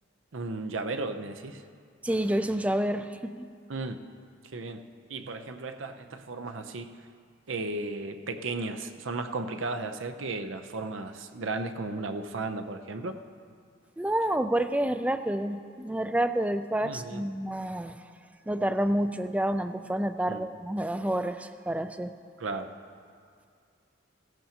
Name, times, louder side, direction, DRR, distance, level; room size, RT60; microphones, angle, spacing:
voice 1, 0.3-1.6 3.7-4.0 4.4-6.9 7.5-13.2 16.8-17.2 20.3-20.4 22.4-22.7, right 3 dB, 85° right, 7 dB, 0.7 m, -35 dB
voice 2, 2.0-3.5 14.0-18.0 18.5-22.1, right 1 dB, 5° right, 10 dB, 0.3 m, -29 dB
17.0 x 15.0 x 2.9 m, 2.2 s
head